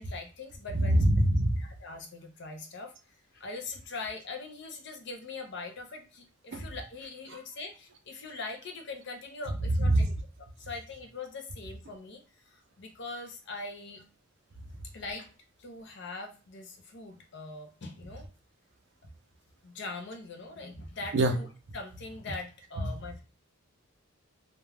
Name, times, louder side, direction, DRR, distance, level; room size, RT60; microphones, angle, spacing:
voice 1, 0.0-1.0 1.6-2.9 3.3-14.0 14.9-15.3 15.6-18.3 19.6-21.5 21.7-23.2, left 3 dB, 55° left, 4 dB, 0.5 m, -42 dB
voice 2, 0.8-1.6 6.5-6.6 7.3-7.4 9.8-10.1 21.1-21.3 22.8-22.9, right 1 dB, 55° right, 5 dB, 0.4 m, -24 dB
2.3 x 2.1 x 3.2 m, 0.34 s
head